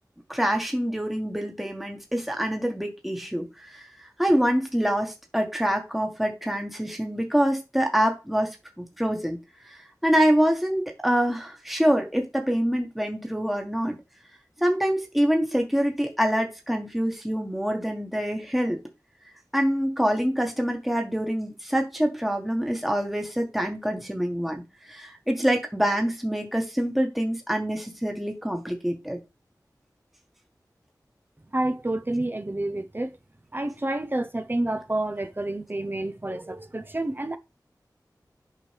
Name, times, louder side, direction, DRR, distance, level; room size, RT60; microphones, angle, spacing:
voice 1, 0.3-3.9 4.2-9.4 9.7-14.0 14.6-18.8 19.5-24.6 24.9-29.2, equal, ahead, 1.4 m, -25 dB
voice 2, 31.5-33.2 33.5-37.4, right 1 dB, 30° right, 0.8 m, -29 dB
8.5 x 5.2 x 3.4 m
wide cardioid pair, 60°, 7 cm